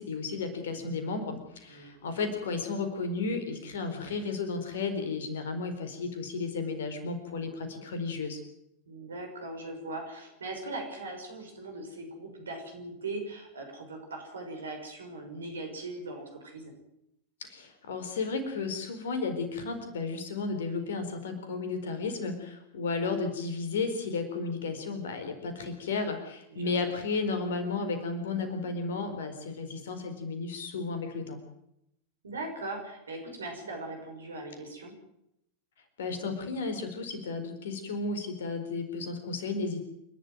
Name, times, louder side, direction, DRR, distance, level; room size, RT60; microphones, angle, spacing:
voice 1, 0.0-8.4 17.4-31.4 36.0-39.9, left 4 dB, 60° left, 8 dB, 4.3 m, -33 dB
voice 2, 8.9-16.7 26.5-27.0 32.2-34.9, right 2 dB, 70° right, 3 dB, 6.2 m, -40 dB
28.0 x 12.0 x 9.3 m, 0.80 s
figure-of-eight pair, 90°, 0 cm